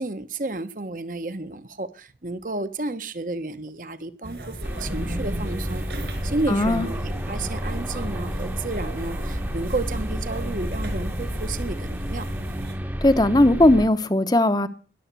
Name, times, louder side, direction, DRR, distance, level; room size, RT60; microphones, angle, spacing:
voice 1, 0.0-7.0 7.3-12.3, right 2 dB, 50° right, 1.1 m, -32 dB
sound 1, 4.2-12.7, right 1 dB, 70° right, 4.8 m, -37 dB
sound 2, 4.6-13.9, equal, 10° right, 0.9 m, -30 dB
voice 2, 6.5-6.9 13.0-14.7, left 1 dB, 20° left, 0.8 m, -18 dB
20.5 x 7.2 x 8.3 m
head